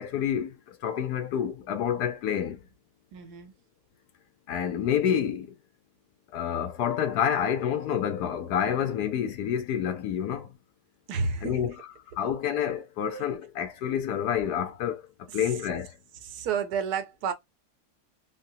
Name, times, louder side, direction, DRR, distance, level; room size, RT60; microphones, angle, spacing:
voice 1, 0.0-2.6 4.5-5.5 6.3-10.5 11.4-11.7 12.2-15.0 15.3-15.9, left 9 dB, 75° left, 1.3 m, -28 dB
voice 2, 3.1-3.5 11.1-11.6 15.3-15.5 16.2-17.3, right 5 dB, 75° right, 1.2 m, -31 dB
3.9 x 2.0 x 2.7 m
omnidirectional pair, 1.8 m